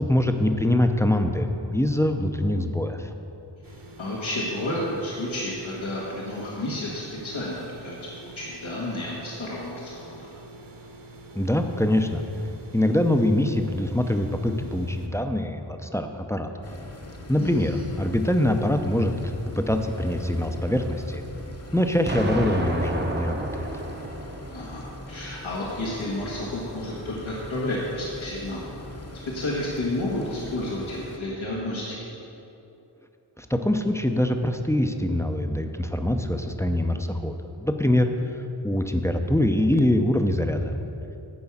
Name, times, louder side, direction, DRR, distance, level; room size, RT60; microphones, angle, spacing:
voice 1, 0.0-3.1 11.3-12.2 12.7-16.5 17.3-21.2 21.7-23.8 33.4-38.1 38.6-40.7, left 1 dB, 5° left, 6 dB, 0.6 m, -24 dB
sound 1, 3.6-15.1, right 2 dB, 45° right, 1.4 m, -46 dB
voice 2, 3.7-10.3 17.4-17.8 24.5-28.7 29.3-32.1, left 1 dB, 85° left, -5 dB, 1.6 m, -31 dB
sound 2, 16.6-31.2, left 1 dB, 30° left, 1.1 m, -41 dB
Explosion, 22.1-25.0, right 1 dB, 20° right, 0.9 m, -31 dB
10.5 x 4.7 x 7.2 m, 2.9 s
cardioid pair, 40°, 46 cm